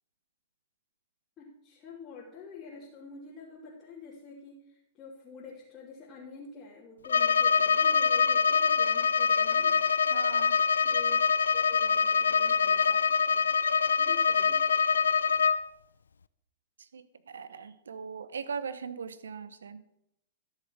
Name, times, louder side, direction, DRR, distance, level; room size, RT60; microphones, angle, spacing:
voice 1, 1.4-9.8 10.8-11.2 11.5-13.5 13.9-14.6, left 4 dB, 30° left, -6 dB, 3.0 m, -48 dB
Bowed string instrument, 7.0-15.6, left 6 dB, 85° left, 0.4 m, -25 dB
voice 2, 10.1-10.6 16.8-19.8, right 6 dB, 85° right, 14 dB, 0.8 m, -40 dB
13.0 x 6.7 x 6.0 m, 0.80 s
hypercardioid pair, 115°, 0 cm